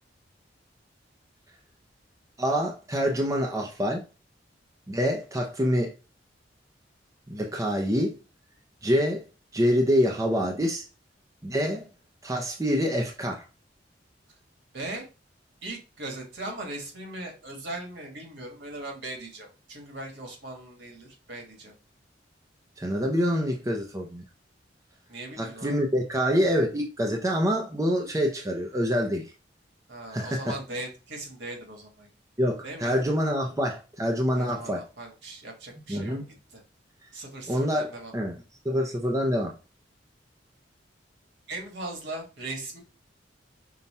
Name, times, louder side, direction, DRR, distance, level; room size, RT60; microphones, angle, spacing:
voice 1, 2.4-4.0 4.9-5.9 7.3-8.2 8.8-9.2 9.5-10.8 11.4-11.9 12.2-13.4 22.8-24.2 25.4-29.3 30.1-30.5 32.4-34.8 35.9-36.3 37.5-38.3 38.6-39.5, equal, 15° right, 0.6 m, -26 dB
voice 2, 14.7-15.1 15.6-21.7 25.1-25.8 29.9-32.1 32.6-33.0 34.3-36.2 36.5-36.6 37.1-38.1 41.5-42.8, right 2 dB, 65° right, 1.5 m, -39 dB
5.4 x 2.4 x 4.2 m
head